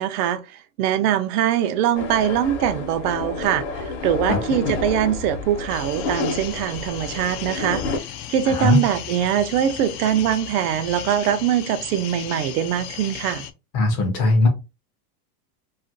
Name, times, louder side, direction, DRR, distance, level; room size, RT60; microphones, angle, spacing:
voice 1, 0.0-7.8 8.3-13.4, right 10 dB, 90° right, 0.6 m, -22 dB
sound 1, 1.9-8.0, left 3 dB, 50° left, 0.7 m, -29 dB
sound 2, 5.7-13.5, left 10 dB, 85° left, 0.6 m, -36 dB
voice 2, 8.5-8.8 13.7-14.5, left 3 dB, 30° left, 0.4 m, -19 dB
2.8 x 2.4 x 2.6 m
supercardioid pair, 180°, 44 cm